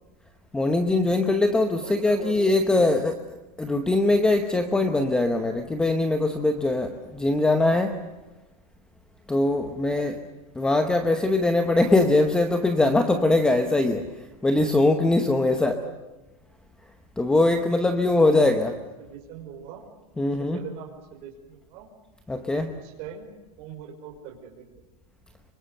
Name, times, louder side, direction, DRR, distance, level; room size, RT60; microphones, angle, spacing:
voice 1, 0.5-3.1 3.6-8.0 9.3-10.2 10.5-15.7 17.2-18.7 20.2-20.6 22.3-22.7, left 2 dB, 5° left, 7 dB, 0.9 m, -22 dB
voice 2, 1.8-2.4 2.8-3.1 9.8-10.1 15.4-15.9 18.1-19.8 20.4-21.9 22.5-23.3 23.6-24.8, right 9 dB, 35° right, 3 dB, 5.5 m, -41 dB
26.0 x 23.5 x 6.8 m, 1.1 s
supercardioid pair, 170°, 19 cm